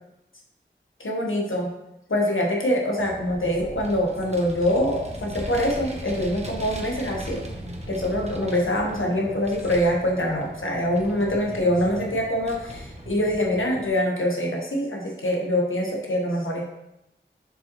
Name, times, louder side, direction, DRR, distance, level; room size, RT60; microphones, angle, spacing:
voice 1, 1.0-1.7 2.1-7.4 7.9-16.7, equal, 90° left, -1 dB, 1.2 m, -24 dB
Vehicle, 3.0-13.9, right 1 dB, 35° right, 1.1 m, -38 dB
6.7 x 5.1 x 3.1 m, 0.90 s
wide cardioid pair, 45°, 20 cm